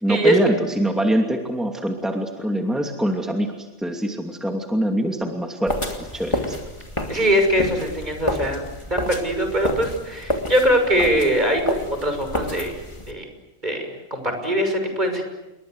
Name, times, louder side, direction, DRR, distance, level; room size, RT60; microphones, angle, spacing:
voice 1, 0.0-5.8 6.1-6.6, right 1 dB, ahead, 2 dB, 2.6 m, -24 dB
sound 1, 5.7-13.1, left 1 dB, 20° left, 2.9 m, -29 dB
voice 2, 7.1-8.6 8.9-12.7 13.1-13.3 13.6-15.2, equal, 35° right, 5 dB, 6.3 m, -22 dB
29.0 x 23.0 x 8.1 m, 1.0 s
omnidirectional pair, 1.3 m